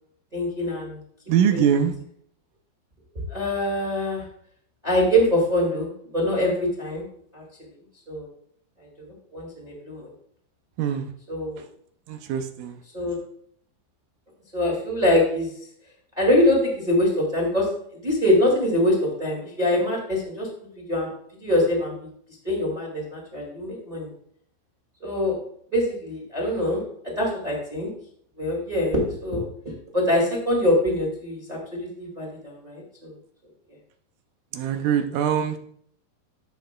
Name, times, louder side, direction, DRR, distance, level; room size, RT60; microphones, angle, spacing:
voice 1, 0.3-1.0 1.5-1.6 3.3-4.2 4.8-7.0 7.3-7.4 8.1-8.3 9.0-10.1 11.3-11.6 12.9-13.1 14.5-15.5 16.2-20.5 20.9-21.1 21.4-22.1 22.4-24.1 25.0-25.3 25.7-27.9 28.4-29.4 29.9-33.1, left 1 dB, 15° right, -2 dB, 1.5 m, -24 dB
voice 2, 1.3-1.9 10.8-11.1 12.1-12.8 34.5-35.6, right 8 dB, 80° right, 7 dB, 2.2 m, -23 dB
12.5 x 6.4 x 2.3 m, 0.64 s
omnidirectional pair, 4.1 m